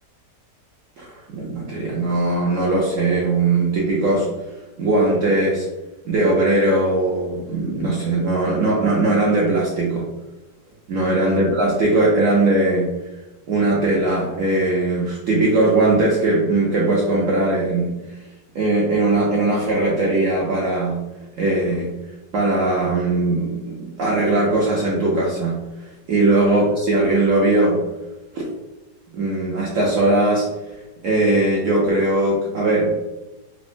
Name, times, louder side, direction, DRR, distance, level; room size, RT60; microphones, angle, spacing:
voice 1, 1.0-4.3 4.8-5.7 6.1-10.1 10.9-12.9 13.5-17.9 18.5-21.1 21.4-21.9 22.3-25.6 26.1-27.8 28.3-28.4 29.1-30.5 31.0-32.9, right 2 dB, 70° right, -4 dB, 0.7 m, -19 dB
3.6 x 2.0 x 2.5 m, 1.1 s
omnidirectional pair, 1.8 m